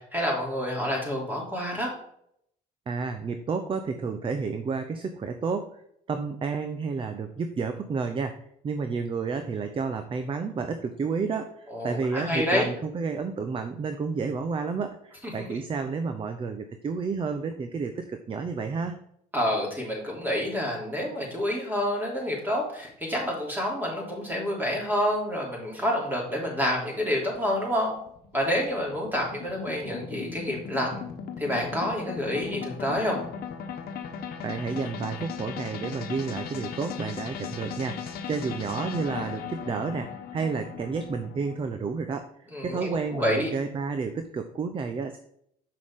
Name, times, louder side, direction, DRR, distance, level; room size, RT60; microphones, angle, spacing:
voice 1, 0.0-1.9 11.7-12.7 15.2-15.6 19.3-27.9 28.3-31.0 31.4-33.2 42.5-43.5, equal, 10° right, -2 dB, 3.2 m, -28 dB
voice 2, 2.9-5.8 6.1-19.0 34.4-45.2, right 5 dB, 30° right, 8 dB, 0.6 m, -31 dB
sound 1, 27.3-41.6, left 7 dB, 65° left, 1.1 m, -38 dB
6.6 x 6.0 x 3.7 m, 0.71 s
cardioid pair, 110°, 17 cm